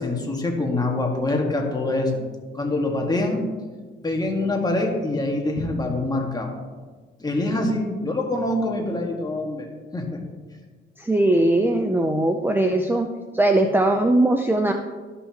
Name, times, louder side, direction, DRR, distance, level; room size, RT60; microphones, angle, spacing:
voice 1, 0.0-2.2 2.5-3.5 4.0-6.5 7.2-10.2, left 2 dB, 20° left, 1 dB, 1.7 m, -25 dB
voice 2, 11.0-13.1 13.3-14.7, right 1 dB, 10° right, 5 dB, 0.5 m, -20 dB
12.5 x 5.6 x 2.9 m, 1.4 s
cardioid pair, 90°, 20 cm